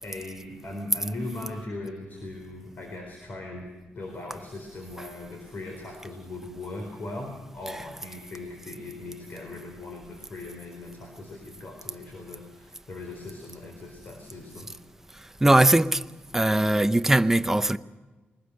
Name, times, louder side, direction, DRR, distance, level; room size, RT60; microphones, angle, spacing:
voice 1, 0.0-14.7, left 2 dB, 45° left, 4.2 m, -39 dB
voice 2, 15.4-16.0 16.3-17.8, right 1 dB, 10° right, 0.7 m, -20 dB
22.5 x 20.0 x 6.5 m
wide cardioid pair, 140°, 4 cm